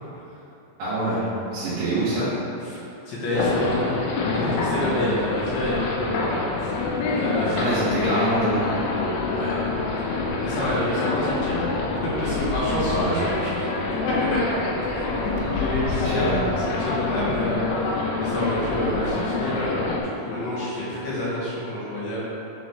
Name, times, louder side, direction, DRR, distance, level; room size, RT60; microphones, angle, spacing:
voice 1, 0.8-2.3 7.6-8.7 12.9-13.3 16.0-16.4, right 2 dB, 80° right, -14 dB, 3.8 m, -25 dB
voice 2, 2.7-3.9 4.3-8.7 9.3-9.6 10.2-11.6 11.9-13.8 14.3-14.4 15.2-22.2, left 1 dB, 65° left, -8 dB, 2.5 m, -28 dB
sound 1, 3.4-20.0, left 3 dB, 90° left, 3.0 m, -26 dB
11.5 x 4.0 x 3.2 m, 3.0 s
omnidirectional pair, 4.9 m